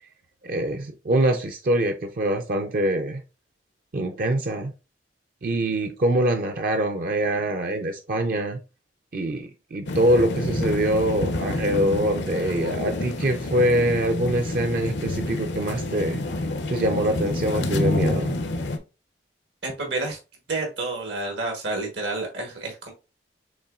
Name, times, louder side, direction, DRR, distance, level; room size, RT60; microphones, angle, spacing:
voice 1, 0.4-3.2 3.9-4.7 5.4-8.6 9.1-16.2 16.7-18.4, right 1 dB, 50° right, 0.5 m, -24 dB
sound 1, 9.9-18.8, left 2 dB, 80° left, 0.7 m, -28 dB
voice 2, 19.6-20.2 20.5-22.9, right 2 dB, 80° right, 1.3 m, -29 dB
6.9 x 3.0 x 2.4 m
head